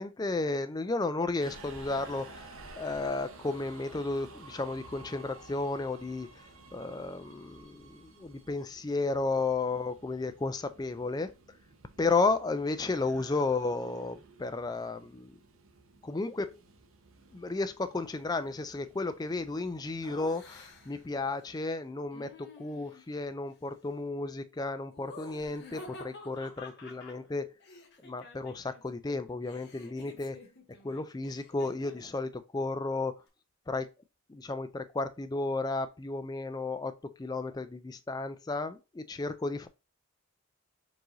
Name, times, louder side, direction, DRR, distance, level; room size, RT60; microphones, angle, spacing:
voice 1, 0.0-11.3 12.0-15.3 16.0-16.6 17.3-27.5 28.0-30.4 30.8-33.1 33.7-33.9 34.3-39.7, left 3 dB, 15° left, 0.3 m, -33 dB
Subway metro underground, 1.4-21.3, right 3 dB, 65° right, 0.7 m, -53 dB
Laughter, 20.0-21.1 22.1-23.1 24.9-28.8 29.1-32.2, left 3 dB, 50° left, 1.0 m, -50 dB
4.7 x 2.7 x 3.8 m
head